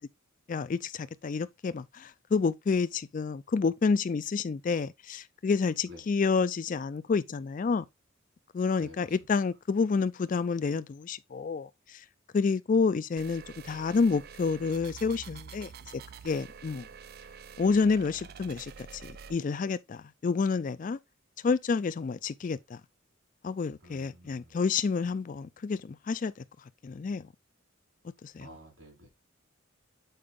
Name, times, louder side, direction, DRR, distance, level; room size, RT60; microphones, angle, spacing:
voice 1, 0.5-7.8 8.5-12.0 12.3-15.7 16.2-16.9 17.6-21.0 21.4-22.8 23.4-26.4 26.8-27.3 28.2-28.5, left 4 dB, 40° left, 0.3 m, -29 dB
voice 2, 8.8-9.2 23.8-24.6 28.4-29.1, equal, 70° right, 4.1 m, -50 dB
sound 1, 13.2-19.4, right 6 dB, 50° right, 0.4 m, -47 dB
6.9 x 4.7 x 3.5 m
head